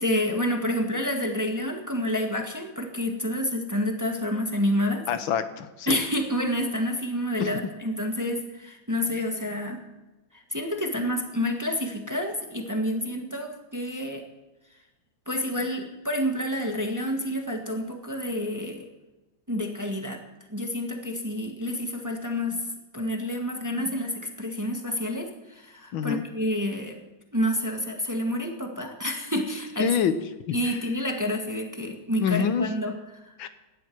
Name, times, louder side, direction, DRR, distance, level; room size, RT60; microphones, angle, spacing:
voice 1, 0.0-5.0 5.9-9.8 10.3-14.2 15.3-18.9 19.5-20.2 20.5-22.7 22.9-27.0 27.3-30.0 30.5-33.3, left 1 dB, 10° right, 3 dB, 1.3 m, -29 dB
voice 2, 5.1-6.0 7.4-7.5 25.9-26.2 29.8-30.1 30.5-30.6 32.2-32.6 33.4-33.5, left 8 dB, 85° left, 11 dB, 1.7 m, -25 dB
17.0 x 12.0 x 4.7 m, 1.1 s
omnidirectional pair, 2.1 m